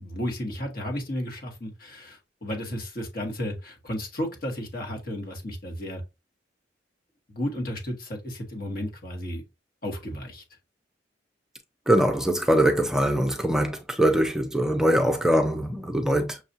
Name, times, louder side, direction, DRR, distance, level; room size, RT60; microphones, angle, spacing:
voice 1, 0.0-6.0 7.3-9.4 9.8-10.4, equal, 50° left, 1.3 m, -33 dB
voice 2, 11.9-16.4, right 1 dB, 5° right, 0.5 m, -22 dB
6.5 x 2.4 x 2.7 m
head